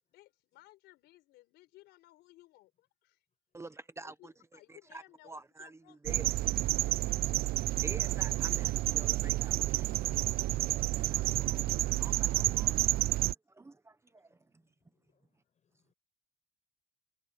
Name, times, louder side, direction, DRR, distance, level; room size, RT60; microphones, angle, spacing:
voice 1, 0.1-3.2 4.0-6.0 10.5-10.6 10.9-11.2 12.2-13.3, left 18 dB, 90° left, 5.0 m, -61 dB
voice 2, 3.5-7.1 7.5-10.0 10.7-13.2 13.5-14.6, right 2 dB, 15° right, 1.0 m, -50 dB
sound 1, 6.1-13.3, right 16 dB, 65° right, 0.4 m, -30 dB
voice 3, 14.1-15.9, left 7 dB, 45° left, 7.5 m, -80 dB
cardioid pair, 110°, 17 cm